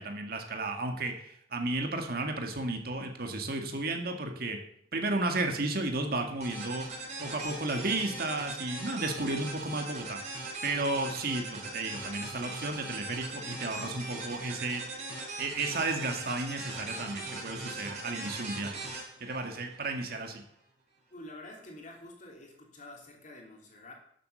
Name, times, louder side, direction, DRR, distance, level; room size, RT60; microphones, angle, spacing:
voice 1, 0.0-4.6 4.9-6.9 7.2-10.2 10.6-15.1 15.4-18.8 19.2-20.4, right 2 dB, 60° right, 4 dB, 2.0 m, -33 dB
sound 1, 6.4-20.1, right 2 dB, 40° right, 5.1 m, -40 dB
voice 2, 21.1-23.9, left 1 dB, 45° left, 0 dB, 3.3 m, -48 dB
11.5 x 7.7 x 6.9 m, 0.69 s
head